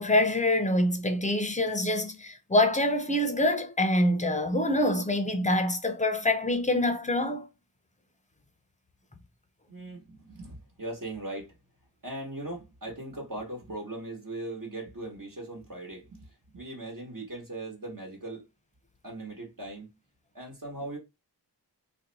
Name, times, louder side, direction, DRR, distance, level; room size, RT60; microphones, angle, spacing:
voice 1, 0.0-7.5, left 1 dB, 20° left, 0.6 m, -25 dB
voice 2, 9.7-11.6 12.0-18.5 19.0-20.0 20.3-21.0, right 2 dB, 55° right, 1.3 m, -39 dB
2.7 x 2.1 x 3.9 m
wide cardioid pair, 55°, 40 cm